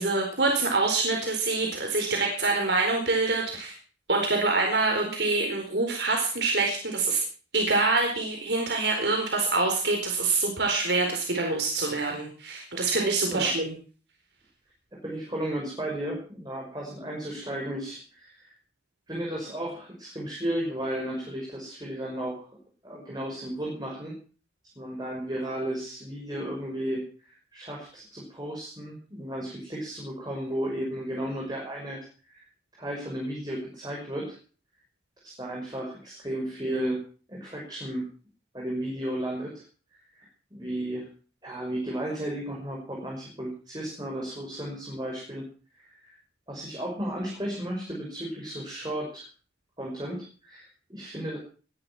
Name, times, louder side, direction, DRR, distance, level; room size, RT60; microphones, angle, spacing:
voice 1, 0.0-3.7 4.1-7.2 7.5-13.7, right 3 dB, 75° right, 1 dB, 4.4 m, -25 dB
voice 2, 15.0-18.5 19.1-22.4 22.8-24.2 24.8-32.0 32.3-32.4 32.7-34.4 35.2-38.1 38.5-39.5 40.2-40.3 40.5-41.1 41.4-45.4 45.8-46.2 46.5-49.3 49.8-51.4, right 1 dB, 25° right, -2 dB, 5.9 m, -34 dB
20.5 x 11.0 x 6.1 m, 0.40 s
head